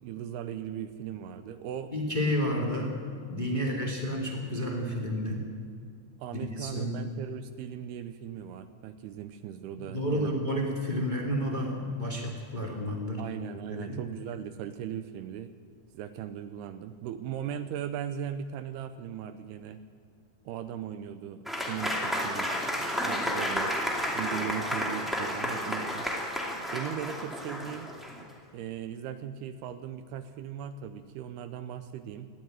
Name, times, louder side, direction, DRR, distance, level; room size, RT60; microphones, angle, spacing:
voice 1, 0.0-1.9 3.5-3.9 6.2-10.3 13.2-15.5 15.9-19.8 20.5-22.5 22.9-23.7 24.1-26.1 26.7-27.9 28.5-32.3, right 9 dB, 80° right, 10 dB, 2.4 m, -38 dB
voice 2, 1.9-5.5 6.3-7.0 9.8-13.2 13.7-14.0, equal, 30° left, 0 dB, 0.8 m, -31 dB
Applause / Crowd, 21.4-28.3, equal, ahead, 0.6 m, -31 dB
20.5 x 14.5 x 9.2 m, 2.2 s
omnidirectional pair, 5.3 m